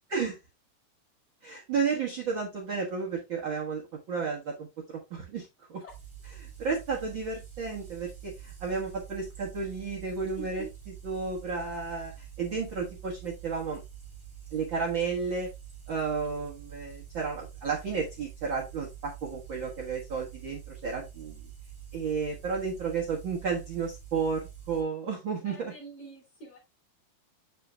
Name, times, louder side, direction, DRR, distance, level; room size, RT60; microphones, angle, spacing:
voice 1, 1.4-3.8 4.1-5.8 6.4-10.6 11.0-13.8 14.5-15.5 15.9-21.4 21.9-25.7, right 5 dB, 80° right, 1.0 m, -32 dB
sound 1, 5.9-24.8, right 9 dB, 15° right, 1.0 m, -47 dB
voice 2, 10.4-10.7 25.4-26.6, right 4 dB, 35° left, 3.7 m, -45 dB
8.0 x 6.9 x 2.3 m
omnidirectional pair, 4.7 m